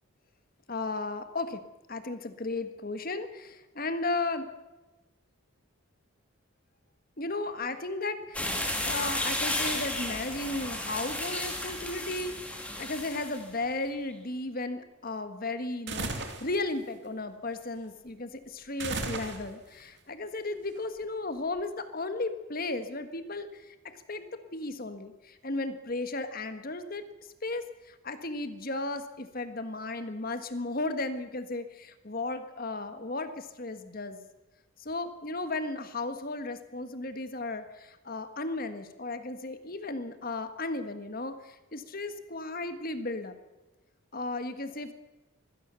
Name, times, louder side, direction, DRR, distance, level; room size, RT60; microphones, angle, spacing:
voice 1, 0.7-1.6 1.9-4.5 7.2-8.5 8.8-27.1 27.4-34.2 34.8-43.4 44.1-44.9, left 2 dB, 40° left, 9 dB, 1.6 m, -35 dB
sound 1, 8.3-13.4, left 1 dB, 5° left, 2.9 m, -33 dB
sound 2, 15.9-16.5 18.8-19.7, right 3 dB, 55° right, 2.6 m, -34 dB
23.0 x 17.0 x 6.9 m, 1.1 s
head